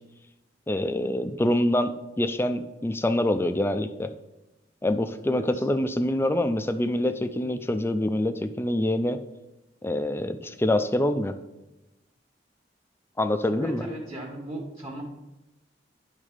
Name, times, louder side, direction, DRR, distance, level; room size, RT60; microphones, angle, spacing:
voice 1, 0.7-4.1 4.8-9.2 9.8-11.3 13.2-13.8, left 1 dB, 15° left, 10 dB, 0.4 m, -25 dB
voice 2, 5.2-5.6 13.5-15.0, right 1 dB, 25° right, -5 dB, 1.3 m, -37 dB
11.0 x 3.7 x 5.1 m, 0.97 s
head